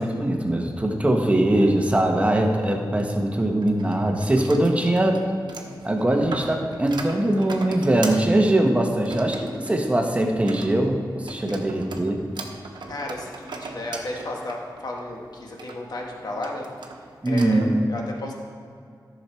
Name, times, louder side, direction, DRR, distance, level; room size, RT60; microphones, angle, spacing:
voice 1, 0.0-5.2 5.8-12.2 17.2-17.7, right 1 dB, 15° right, 2 dB, 1.1 m, -21 dB
sound 1, 1.3-3.0 3.6-17.8, right 3 dB, 75° right, 1.0 m, -39 dB
voice 2, 12.9-16.7 17.2-18.4, left 2 dB, 60° left, 0 dB, 1.7 m, -33 dB
14.0 x 6.2 x 4.5 m, 2.3 s
wide cardioid pair, 140°, 8 cm